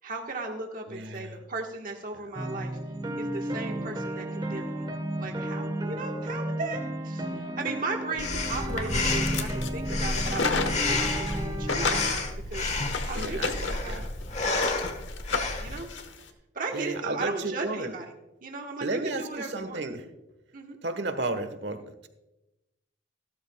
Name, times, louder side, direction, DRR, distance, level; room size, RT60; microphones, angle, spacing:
voice 1, 0.0-2.8 3.2-4.8 5.2-12.7 13.0-14.1 15.6-15.9 16.5-18.1 18.4-19.8 20.5-20.8, right 3 dB, 50° right, 1 dB, 1.4 m, -36 dB
voice 2, 0.9-1.4 2.1-2.3 13.1-14.1 16.7-17.9 18.8-20.0 20.8-22.1, right 2 dB, 70° right, 9 dB, 1.2 m, -33 dB
sound 1, 2.3-12.0, right 1 dB, 25° right, 1.2 m, -33 dB
Breathing, 8.2-15.8, left 3 dB, 40° left, 1.4 m, -30 dB
sound 2, 9.2-9.7 10.0-11.4 11.7-16.2, left 4 dB, 85° left, 1.1 m, -32 dB
15.5 x 12.5 x 2.3 m, 0.96 s
head